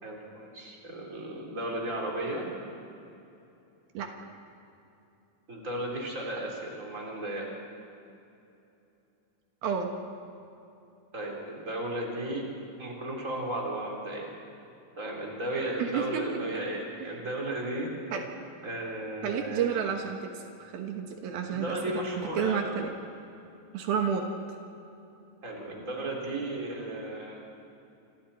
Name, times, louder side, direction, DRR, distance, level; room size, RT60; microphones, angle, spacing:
voice 1, 0.0-2.5 5.5-7.5 11.1-12.4 12.8-14.3 15.0-17.9 18.6-19.8 21.5-22.7 25.4-27.4, right 1 dB, 20° right, -2 dB, 4.1 m, -34 dB
voice 2, 15.8-16.4 17.0-17.1 18.1-18.2 19.2-22.0 22.4-22.9 23.7-24.3, right 7 dB, 80° right, 3 dB, 3.2 m, -31 dB
28.0 x 26.5 x 4.4 m, 2.8 s
omnidirectional pair, 4.2 m